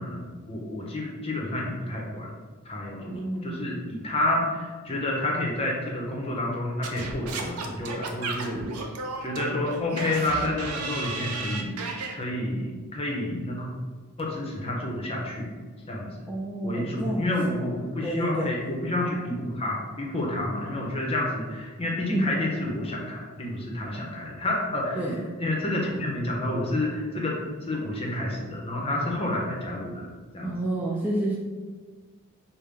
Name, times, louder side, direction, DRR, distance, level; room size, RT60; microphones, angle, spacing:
voice 1, 0.0-2.3 2.6-8.7 9.2-13.7 14.2-15.5 15.9-16.3 16.6-25.1 25.4-30.1 30.3-30.6, left 1 dB, 25° left, -2 dB, 0.7 m, -29 dB
voice 2, 3.1-3.9 16.3-17.3 18.0-18.5 22.1-22.3 24.9-25.2 30.4-31.4, right 1 dB, 5° right, -5 dB, 0.3 m, -29 dB
Singing / Scratching (performance technique), 6.8-12.1, right 3 dB, 75° right, 0.5 m, -34 dB
5.3 x 2.1 x 3.4 m, 1.4 s
head